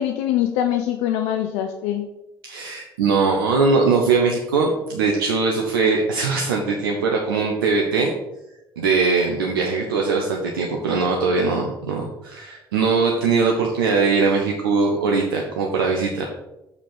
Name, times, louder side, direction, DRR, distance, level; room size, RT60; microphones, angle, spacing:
voice 1, 0.0-2.1, left 11 dB, 65° left, 7 dB, 0.5 m, -23 dB
voice 2, 2.4-8.1 8.8-16.3, right 4 dB, 80° right, 1 dB, 0.8 m, -21 dB
6.6 x 5.1 x 5.4 m, 0.95 s
figure-of-eight pair, 50°, 12 cm